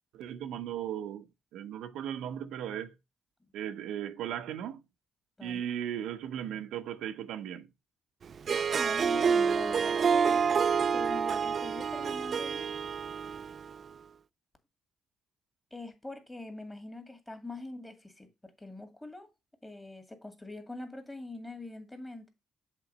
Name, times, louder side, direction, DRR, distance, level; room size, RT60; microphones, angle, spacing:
voice 1, 0.1-1.3 1.5-2.9 3.5-4.8 5.4-7.7, right 10 dB, 85° right, 0.6 m, -37 dB
Harp, 8.3-13.8, right 6 dB, 50° right, 0.3 m, -28 dB
voice 2, 8.5-10.5 10.9-12.7 15.7-19.3 19.6-22.3, left 2 dB, 15° left, 2.0 m, -43 dB
7.3 x 3.8 x 5.1 m
cardioid pair, 90°, 0 cm